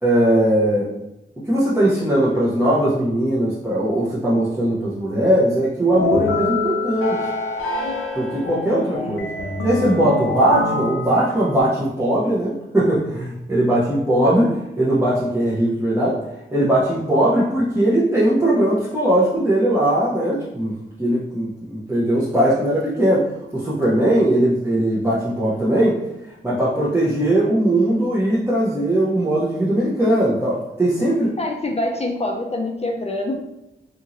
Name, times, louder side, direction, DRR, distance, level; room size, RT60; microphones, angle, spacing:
voice 1, 0.0-0.9 1.5-7.2 8.1-9.3 9.6-16.2 16.5-20.7 21.0-23.2 23.5-26.0 26.4-31.3, right 1 dB, 10° right, -8 dB, 0.8 m, -19 dB
sound 1, 5.9-11.6, left 3 dB, 90° left, 0.5 m, -25 dB
voice 2, 31.4-33.3, left 2 dB, 30° left, 1 dB, 0.5 m, -25 dB
2.9 x 2.7 x 2.5 m, 0.90 s
cardioid pair, 45°, 21 cm